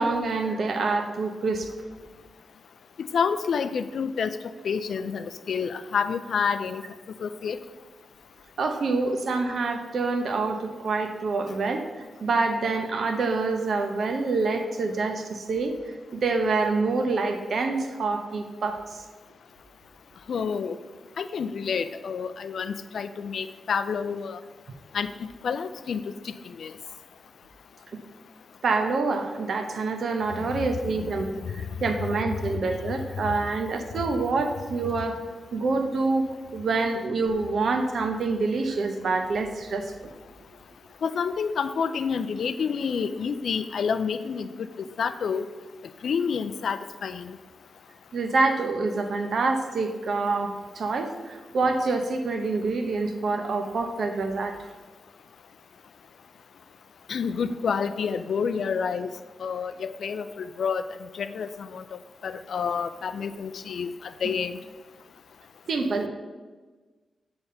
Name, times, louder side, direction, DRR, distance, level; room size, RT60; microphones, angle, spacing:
voice 1, 0.0-1.7 8.6-15.8 16.1-19.0 27.9-28.0 28.6-35.2 35.5-36.3 36.5-40.1 48.1-54.7 65.7-66.1, right 3 dB, 65° right, 6 dB, 0.7 m, -26 dB
voice 2, 3.0-4.4 4.6-6.8 7.2-7.6 20.3-20.8 21.2-24.4 24.9-26.7 30.4-30.5 31.0-31.1 31.4-31.5 41.0-44.7 45.0-45.5 46.0-47.4 57.1-59.1 59.4-60.8 61.1-61.8 62.2-64.5, left 6 dB, 70° left, 11 dB, 0.3 m, -29 dB
8.4 x 3.4 x 5.5 m, 1.3 s
wide cardioid pair, 115°, 0 cm